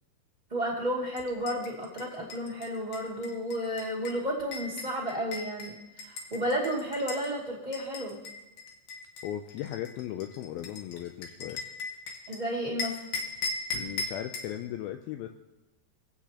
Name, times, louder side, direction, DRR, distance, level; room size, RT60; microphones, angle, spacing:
voice 1, 0.5-8.2 12.3-13.0, equal, 15° right, -5 dB, 1.4 m, -32 dB
sound 1, 1.1-7.3 7.7-12.4 12.8-14.5, left 3 dB, 65° left, 2.8 m, -38 dB
voice 2, 9.2-11.6 13.8-15.3, left 12 dB, 85° left, 6 dB, 2.1 m, -37 dB
22.5 x 8.2 x 3.0 m, 1.0 s
omnidirectional pair, 4.8 m